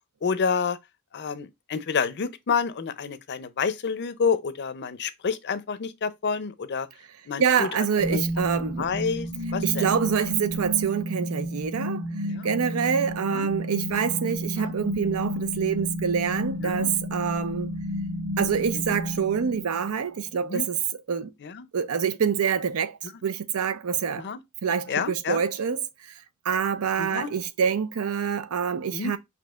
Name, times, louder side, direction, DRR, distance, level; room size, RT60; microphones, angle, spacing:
voice 1, 0.2-0.8 1.1-6.9 7.3-7.7 8.1-8.2 8.5-9.9 12.3-12.5 13.3-13.5 14.6-14.7 16.6-16.9 20.5-20.7 21.4-21.7 24.2-24.4 24.9-25.4 27.0-27.3 28.9-29.1, left 6 dB, 55° left, 0.5 m, -29 dB
voice 2, 7.4-9.0 9.6-12.0 12.4-17.7 18.4-20.8 21.1-21.3 21.7-24.3 24.6-25.8 26.4-29.2, right 7 dB, 90° right, 0.5 m, -26 dB
sound 1, 8.0-20.0, equal, 45° right, 0.9 m, -31 dB
6.0 x 2.8 x 2.3 m
head